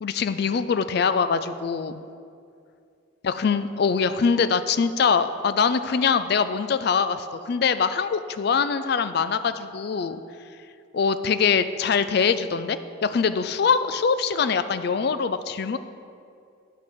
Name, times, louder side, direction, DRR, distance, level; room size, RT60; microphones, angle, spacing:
voice 1, 0.0-2.0 3.2-10.2 10.9-15.8, left 5 dB, 50° left, 12 dB, 0.4 m, -23 dB
8.9 x 6.6 x 5.3 m, 2.4 s
head